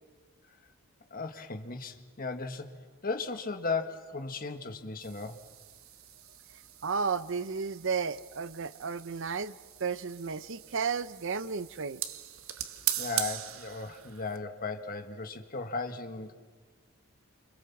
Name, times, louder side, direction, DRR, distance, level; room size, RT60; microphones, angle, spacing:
voice 1, 1.1-2.7 3.0-5.4 13.0-16.3, left 4 dB, 45° left, 1.7 m, -36 dB
sound 1, 5.0-14.4, right 11 dB, 80° right, 1.4 m, -40 dB
voice 2, 6.8-9.5 9.8-12.0, right 5 dB, 65° right, 0.7 m, -33 dB
29.0 x 27.0 x 7.3 m
head